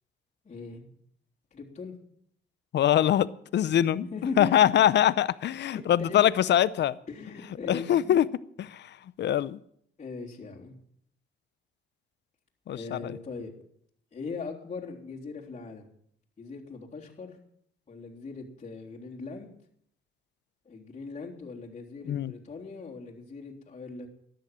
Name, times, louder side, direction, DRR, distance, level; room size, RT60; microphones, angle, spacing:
voice 1, 0.4-0.9 1.5-1.9 3.7-4.5 5.6-6.3 7.1-8.2 10.0-10.8 12.7-13.5 14.1-15.9 16.4-17.4 17.9-19.5 20.7-24.1, left 4 dB, 35° left, -4 dB, 3.6 m, -39 dB
voice 2, 2.7-3.3 3.5-4.0 4.4-7.0 7.7-8.2 8.6-9.6 12.7-13.1 22.1-22.3, left 11 dB, 60° left, 18 dB, 0.7 m, -23 dB
13.0 x 10.5 x 7.6 m, 0.67 s
cardioid pair, 90°, 20 cm